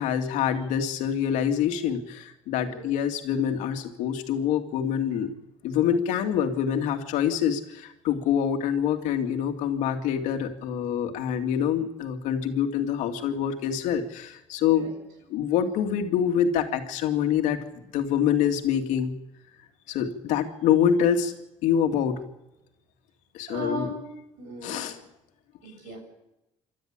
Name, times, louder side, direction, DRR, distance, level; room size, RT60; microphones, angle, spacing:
voice 1, 0.0-5.3 5.6-14.9 15.3-17.6 17.9-19.2 19.9-21.3 21.6-22.2 23.3-23.9 24.6-25.0, left 8 dB, 80° left, 5 dB, 2.3 m, -25 dB
voice 2, 2.6-2.9 14.7-14.9 23.5-24.0 24.4-24.8 25.6-26.0, equal, 85° right, 3 dB, 7.6 m, -36 dB
27.5 x 12.5 x 8.7 m, 0.91 s
supercardioid pair, 70°, 12 cm